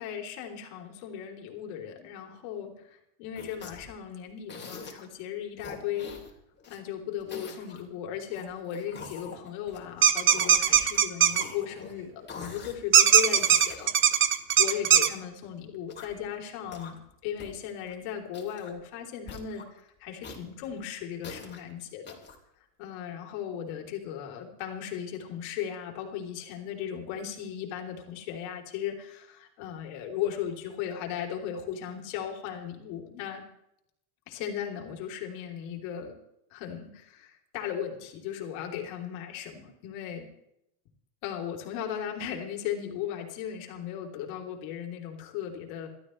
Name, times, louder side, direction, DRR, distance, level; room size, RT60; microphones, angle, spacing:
voice 1, 0.0-6.1 6.7-13.9 14.6-22.2 22.8-33.4 34.3-36.1 36.5-40.3 41.2-45.9, left 9 dB, 75° left, 2 dB, 3.4 m, -37 dB
sound 1, 3.3-3.9 4.5-5.1 5.6-6.8 7.2-7.8 8.3-9.9 10.2-11.0 11.3-11.9 12.3-12.7 13.1-15.1 15.7-16.2 16.7-17.1 17.4-17.5 17.8-17.9 18.3-18.8 19.3-19.6 20.2-21.6 22.1-22.3, left 4 dB, 25° left, 3.2 m, -44 dB
sound 2, 10.0-11.4 12.9-15.1, right 9 dB, 25° right, 0.8 m, -19 dB
29.5 x 13.0 x 3.2 m, 0.79 s
cardioid pair, 145°, 46 cm